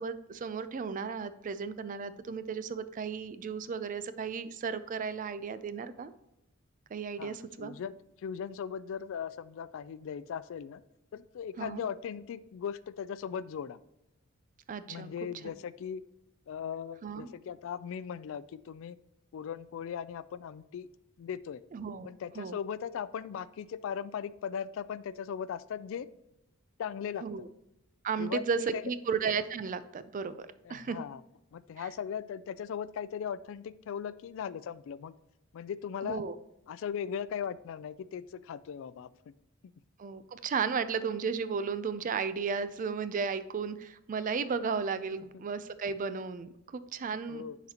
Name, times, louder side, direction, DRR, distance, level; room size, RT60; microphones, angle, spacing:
voice 1, 0.0-6.1 6.9-7.7 11.6-11.8 14.7-15.1 15.4-15.5 17.0-17.3 21.7-22.1 22.4-22.6 27.2-27.5 28.0-31.0 31.8-31.9 36.0-36.3 40.0-47.4, right 5 dB, 40° right, 13 dB, 0.4 m, -34 dB
voice 2, 7.2-10.8 11.1-13.8 14.9-16.0 16.5-19.0 19.3-20.9 21.2-21.6 22.1-26.1 26.8-27.5 28.2-28.4 28.7-28.8 30.6-31.2 31.5-35.1 35.5-36.2 36.7-39.1 45.1-45.4 47.3-47.6, left 8 dB, 65° left, 16 dB, 0.3 m, -38 dB
10.5 x 4.0 x 2.8 m, 0.88 s
head